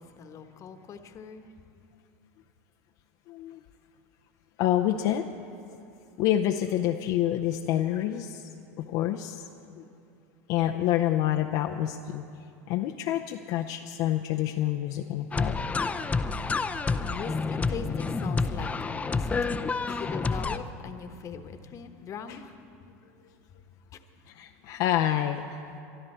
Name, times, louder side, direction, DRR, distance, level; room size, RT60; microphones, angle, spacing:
voice 1, 0.0-1.4 16.7-19.6 19.9-22.6, left 6 dB, 40° left, 8 dB, 1.2 m, -41 dB
voice 2, 3.3-3.6 4.6-5.3 6.2-8.4 8.8-9.4 10.5-12.3 12.7-15.6 19.9-20.0 22.3-22.4 24.3-25.5, left 12 dB, 60° left, 4 dB, 0.6 m, -27 dB
sound 1, 15.3-20.6, left 4 dB, 15° left, 0.6 m, -29 dB
23.5 x 12.5 x 4.4 m, 2.7 s
hypercardioid pair, 95°, 8 cm